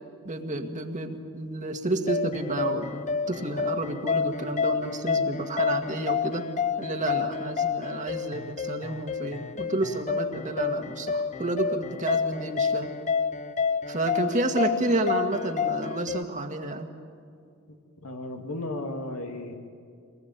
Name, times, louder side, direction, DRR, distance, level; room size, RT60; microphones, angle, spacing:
voice 1, 0.2-6.5 6.8-12.9 13.9-16.9, right 2 dB, 35° right, 5 dB, 1.9 m, -30 dB
sound 1, 2.1-16.2, left 6 dB, 35° left, 0.7 m, -29 dB
voice 2, 17.7-19.5, left 2 dB, 85° left, 3 dB, 2.6 m, -35 dB
25.0 x 20.5 x 9.3 m, 2.3 s
head